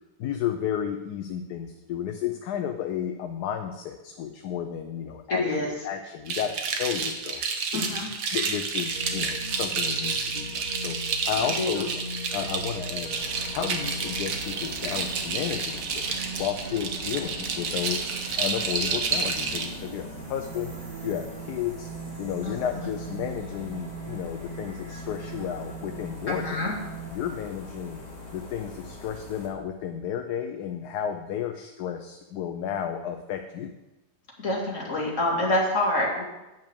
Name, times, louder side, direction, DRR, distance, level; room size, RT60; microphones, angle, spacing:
voice 1, 0.2-7.4 7.7-7.9 8.3-11.9 12.3-13.1 13.5-18.1 18.4-21.9 22.2-26.6 27.1-28.0 28.3-33.7, left 9 dB, 75° left, 6 dB, 1.2 m, -32 dB
voice 2, 5.3-5.7 7.7-8.1 11.4-11.8 22.4-22.9 26.3-26.8 34.4-36.2, left 1 dB, 50° left, -3 dB, 2.5 m, -27 dB
sound 1, 6.3-19.7, right 5 dB, 80° right, 1.6 m, -30 dB
sound 2, 8.9-27.1, right 3 dB, 55° right, 1.7 m, -40 dB
sound 3, 13.1-29.5, left 2 dB, 25° left, 2.1 m, -43 dB
9.1 x 5.4 x 7.0 m, 1.0 s
omnidirectional pair, 1.7 m